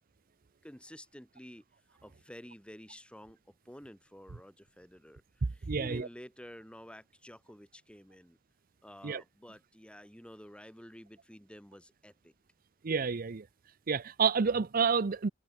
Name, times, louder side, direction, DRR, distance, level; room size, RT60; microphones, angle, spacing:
voice 1, 0.6-8.4 8.8-12.3, equal, 5° left, 4.4 m, -51 dB
voice 2, 5.7-6.1 9.0-9.2 12.8-13.4 13.9-15.3, right 5 dB, 50° right, 0.6 m, -29 dB
head